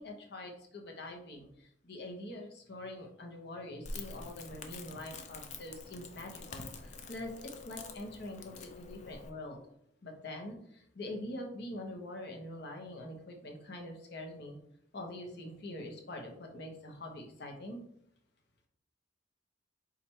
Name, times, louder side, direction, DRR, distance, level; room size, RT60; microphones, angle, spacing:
voice 1, 0.0-7.3 7.6-9.6 10.0-14.6 14.9-17.8, left 1 dB, 60° left, 2 dB, 0.9 m, -44 dB
Crackle, 3.8-9.3, left 3 dB, 40° left, 0.5 m, -47 dB
4.4 x 2.5 x 4.3 m, 0.71 s
head